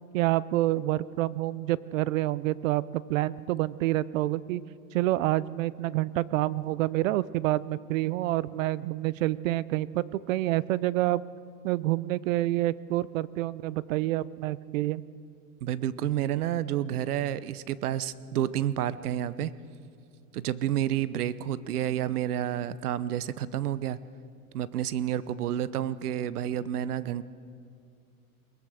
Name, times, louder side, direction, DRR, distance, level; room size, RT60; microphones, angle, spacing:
voice 1, 0.1-4.6 4.9-11.2 11.6-15.0, right 16 dB, 60° right, 20 dB, 0.7 m, -28 dB
voice 2, 15.6-19.5 20.3-24.0 24.5-27.2, right 11 dB, 80° right, 17 dB, 1.0 m, -30 dB
22.0 x 20.0 x 6.4 m, 2.3 s
supercardioid pair, 140°, 44 cm